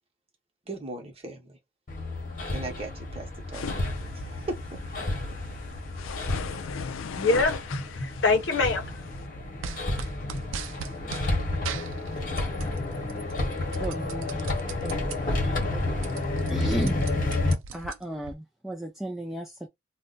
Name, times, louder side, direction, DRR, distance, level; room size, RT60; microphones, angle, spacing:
voice 1, 0.7-1.6 2.5-3.8 4.1-4.5 5.3-5.4, right 2 dB, 30° right, 0.9 m, -38 dB
Hammer, 1.9-17.5, left 2 dB, 45° left, 1.0 m, -31 dB
sound 1, 3.5-9.3, left 5 dB, 80° left, 0.4 m, -39 dB
voice 2, 7.1-13.9, left 3 dB, 65° left, 0.8 m, -31 dB
sound 2, 9.6-11.3 11.6-12.8 13.1-15.2 15.6-15.7 15.9-18.3, right 6 dB, 80° right, 0.5 m, -39 dB
voice 3, 13.8-14.5 14.8-17.0 17.7-19.7, right 1 dB, ahead, 0.4 m, -35 dB
2.5 x 2.2 x 3.8 m
head